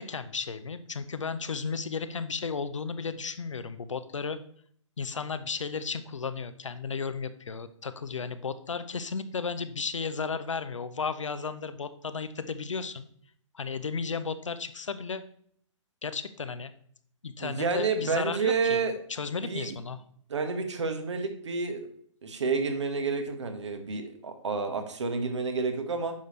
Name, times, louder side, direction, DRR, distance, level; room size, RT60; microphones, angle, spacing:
voice 1, 0.0-4.4 5.0-13.1 13.5-15.2 16.0-16.7 17.2-20.0, left 5 dB, 70° left, 12 dB, 0.8 m, -34 dB
voice 2, 17.4-18.9 19.4-19.7 20.3-21.9 22.2-26.1, right 4 dB, 60° right, 6 dB, 1.5 m, -29 dB
9.4 x 6.6 x 3.2 m, 0.63 s
figure-of-eight pair, 125°, 16 cm